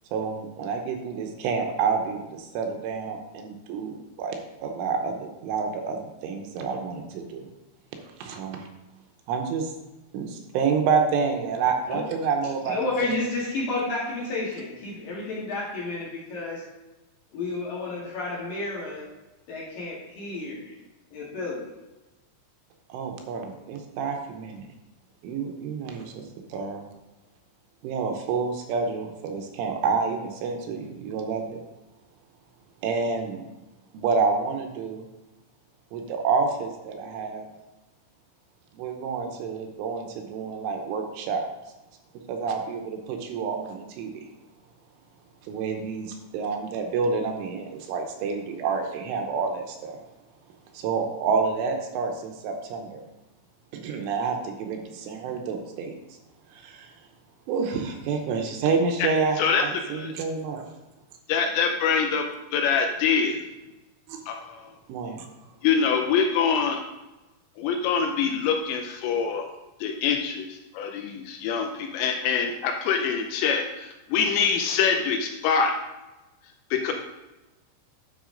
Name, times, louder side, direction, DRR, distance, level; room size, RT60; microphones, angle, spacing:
voice 1, 0.1-7.5 8.2-8.6 9.3-9.7 10.1-12.8 22.9-24.7 25.2-26.8 27.8-31.6 32.8-33.4 33.9-35.1 35.9-37.5 38.7-41.5 42.3-44.3 45.4-50.0 50.7-53.0 53.7-56.0 56.5-56.9 57.5-60.7 64.1-64.2 64.9-65.3, right 5 dB, 80° right, 3 dB, 3.2 m, -28 dB
voice 2, 12.7-16.6 17.3-19.0 19.5-20.8 21.1-21.6, left 2 dB, 55° left, -6 dB, 2.9 m, -31 dB
voice 3, 61.3-62.2 62.5-63.4 64.3-64.7 65.6-66.8 67.6-69.5 69.8-75.7 76.7-76.9, left 6 dB, 85° left, 4 dB, 2.6 m, -24 dB
10.5 x 6.7 x 3.8 m, 1.1 s
omnidirectional pair, 5.8 m